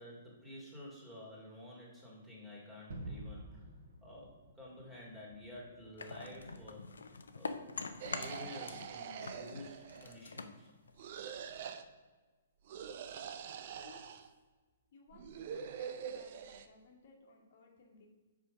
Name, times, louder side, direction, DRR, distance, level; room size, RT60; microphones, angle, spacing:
voice 1, 0.0-3.7 4.0-6.9 7.3-7.5 8.0-10.7, left 1 dB, 10° right, -4 dB, 2.2 m, -51 dB
Gunshot gunfire / Fireworks / Boom, 2.9-7.7, right 1 dB, 75° right, 1.5 m, -51 dB
sound 1, 6.0-8.9 9.2-11.6, left 4 dB, 90° left, 0.6 m, -44 dB
sound 2, 8.0-10.3 11.0-11.8 12.7-14.3 15.1-16.7, right 7 dB, 50° right, 0.5 m, -45 dB
voice 2, 14.9-18.1, left 4 dB, 60° left, 1 dB, 1.3 m, -60 dB
5.5 x 5.0 x 5.0 m, 1.3 s
hypercardioid pair, 135°, 0 cm